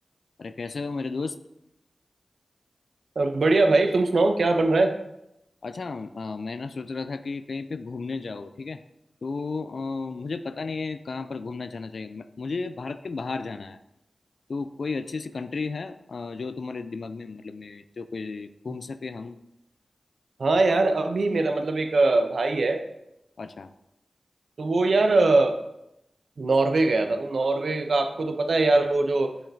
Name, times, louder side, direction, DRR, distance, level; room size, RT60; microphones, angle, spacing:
voice 1, 0.4-1.4 5.6-8.8 9.2-13.8 14.5-19.4 23.4-23.7, left 4 dB, 75° left, 11 dB, 0.3 m, -33 dB
voice 2, 3.2-4.9 20.4-22.8 24.6-25.5 26.4-29.3, right 2 dB, 75° right, 7 dB, 0.5 m, -21 dB
7.4 x 4.8 x 2.6 m, 0.86 s
cardioid pair, 40°, 0 cm